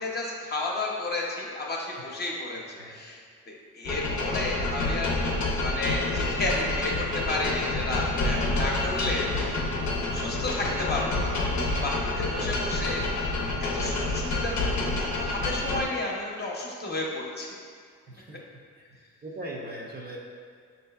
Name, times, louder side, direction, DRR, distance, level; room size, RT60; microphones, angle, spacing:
voice 1, 0.0-5.1 5.6-9.6 10.1-17.5, left 2 dB, 35° left, -3 dB, 0.8 m, -32 dB
voice 2, 2.5-3.0 9.7-10.1 12.1-13.1 18.1-18.4 18.7-20.2, right 1 dB, 30° right, -2 dB, 0.6 m, -41 dB
sound 1, 3.8-15.8, left 2 dB, 70° left, 0.6 m, -28 dB
6.0 x 2.7 x 2.3 m, 2.1 s
cardioid pair, 90°, 30 cm